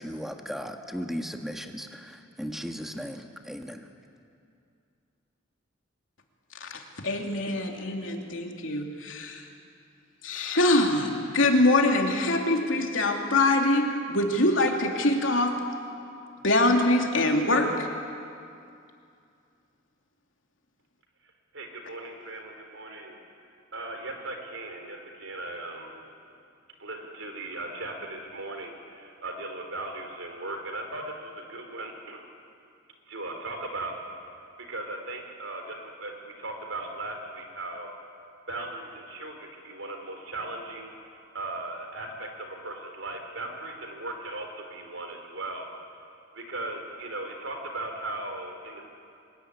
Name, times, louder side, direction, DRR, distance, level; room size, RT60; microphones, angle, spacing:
voice 1, 0.0-3.8, equal, ahead, 4 dB, 1.5 m, -36 dB
voice 2, 6.6-9.4 10.2-15.5 16.4-17.9, left 2 dB, 80° left, 2 dB, 3.1 m, -24 dB
voice 3, 21.5-23.2 23.7-26.0 26.8-32.2 33.1-34.0 34.7-37.9 38.5-45.7 46.3-48.8, right 2 dB, 85° right, 4 dB, 4.2 m, -38 dB
24.5 x 21.0 x 9.8 m, 2.5 s
head